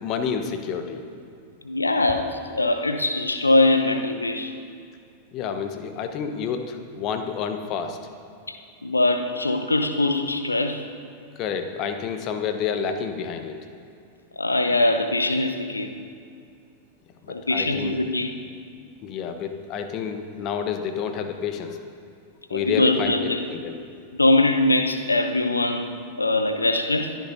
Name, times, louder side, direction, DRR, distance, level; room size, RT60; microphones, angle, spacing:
voice 1, 0.0-1.0 5.3-8.0 11.4-13.6 17.3-18.0 19.0-21.8 22.5-23.8, left 7 dB, 35° left, 7 dB, 1.1 m, -29 dB
voice 2, 1.6-4.5 8.5-8.6 8.8-10.8 14.4-15.9 17.3-18.3 22.5-23.4 24.1-25.9 26.2-27.2, left 2 dB, 80° left, 7 dB, 0.9 m, -22 dB
27.5 x 10.0 x 2.7 m, 2.4 s
figure-of-eight pair, 90°, 0 cm